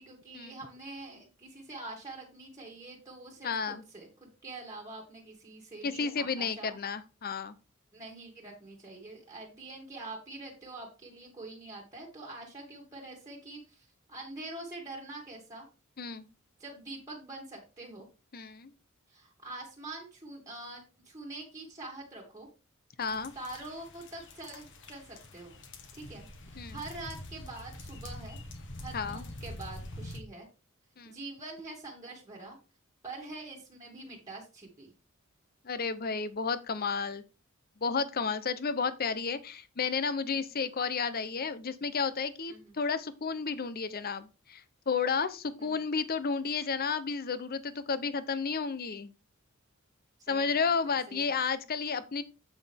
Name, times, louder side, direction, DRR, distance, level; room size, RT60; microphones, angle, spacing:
voice 1, 0.0-6.7 7.9-15.7 16.6-18.1 19.1-22.5 23.4-25.6 25.9-28.4 28.8-30.5 31.1-32.6 33.0-34.9 42.5-42.7 45.6-45.7 50.3-51.4, right 2 dB, 15° right, -2 dB, 2.1 m, -45 dB
voice 2, 3.4-3.8 5.8-7.6 16.0-16.3 18.3-18.7 23.0-23.3 26.6-26.8 28.9-29.2 31.0-31.2 35.6-37.2 37.8-44.6 44.9-49.1 50.3-52.2, left 5 dB, 45° left, 14 dB, 0.7 m, -32 dB
sound 1, 23.0-30.2, left 1 dB, 60° left, 1.5 m, -45 dB
8.1 x 6.3 x 3.5 m, 0.31 s
head